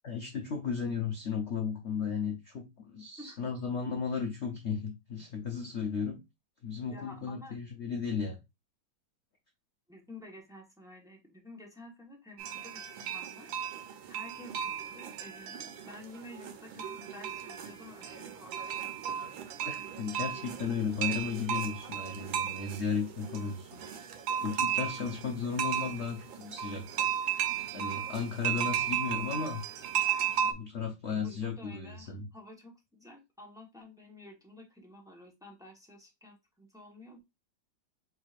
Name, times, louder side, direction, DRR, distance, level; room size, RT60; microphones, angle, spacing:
voice 1, 0.0-6.2 6.6-8.4 19.6-23.8 24.4-27.1 27.7-29.6 30.4-32.3, left 6 dB, 80° left, 0.6 m, -35 dB
voice 2, 6.9-7.6 9.9-12.8 13.1-13.8 14.1-14.6 14.9-18.8 25.9-26.1 28.4-28.7 31.1-37.2, left 1 dB, 5° right, 0.6 m, -51 dB
sound 1, 12.4-30.5, right 9 dB, 75° right, 1.6 m, -35 dB
4.5 x 3.6 x 2.4 m
omnidirectional pair, 2.2 m